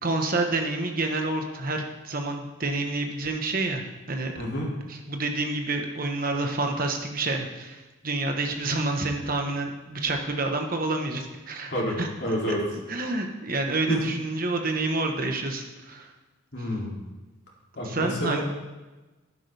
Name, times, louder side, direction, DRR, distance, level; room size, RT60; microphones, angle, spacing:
voice 1, 0.0-3.8 4.1-4.3 4.9-7.8 8.0-11.7 12.0-12.1 12.5-16.1 16.6-16.7 17.8-18.4, right 2 dB, 40° right, 3 dB, 1.2 m, -28 dB
voice 2, 4.3-4.7 11.7-12.6 13.9-14.0 16.5-17.0 17.7-18.4, equal, 50° left, -3 dB, 2.9 m, -29 dB
12.0 x 11.0 x 3.5 m, 1.2 s
head